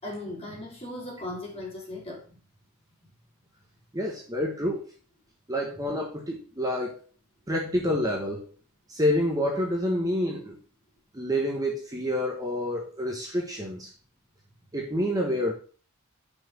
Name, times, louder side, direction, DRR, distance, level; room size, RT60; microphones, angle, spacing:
voice 1, 0.0-2.4 5.7-5.8, left 1 dB, 25° left, -3 dB, 3.1 m, -38 dB
voice 2, 3.9-4.8 5.5-7.0 7.5-8.5 8.9-10.6 11.1-13.9 14.7-15.5, left 1 dB, 15° right, 0 dB, 1.3 m, -28 dB
5.9 x 5.5 x 6.3 m, 0.39 s
head